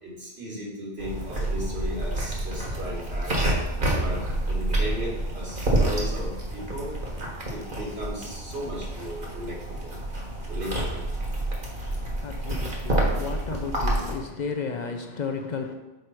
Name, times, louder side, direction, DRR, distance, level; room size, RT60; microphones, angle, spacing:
voice 1, 0.0-3.5 4.0-6.9 7.5-10.0 10.5-11.0, equal, 80° right, 2.4 m, -36 dB
sound 1, 1.0-14.1, right 1 dB, 55° right, 1.6 m, -28 dB
voice 2, 11.2-15.7, left 5 dB, 55° left, 0.5 m, -34 dB
6.4 x 4.8 x 4.4 m
omnidirectional pair, 1.1 m